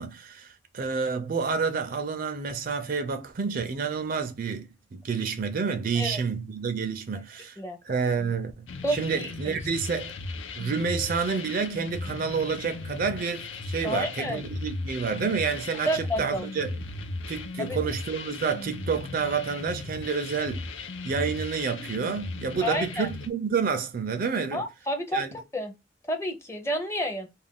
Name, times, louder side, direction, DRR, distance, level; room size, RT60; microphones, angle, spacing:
voice 1, 0.0-7.6 7.9-10.1 10.6-16.8 17.3-20.7 21.0-24.6 25.1-25.3, right 5 dB, 50° right, 0.4 m, -29 dB
sound 1, 8.7-23.3, left 3 dB, 80° left, 0.5 m, -37 dB
voice 2, 8.8-9.6 13.8-14.4 15.9-16.5 17.6-17.8 22.6-23.1 24.5-25.7 26.1-27.3, equal, 15° left, 0.5 m, -30 dB
2.4 x 2.2 x 3.4 m
head